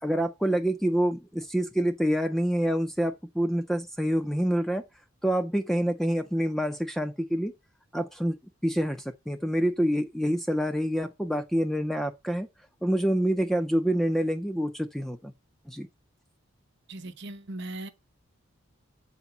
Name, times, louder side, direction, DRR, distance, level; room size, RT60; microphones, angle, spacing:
voice 1, 0.0-4.8 5.2-7.5 7.9-8.3 8.6-12.5 12.8-15.3 15.7-15.9, equal, ahead, 0.4 m, -27 dB
voice 2, 16.9-17.9, right 2 dB, 55° right, 0.9 m, -38 dB
7.8 x 4.2 x 5.9 m
head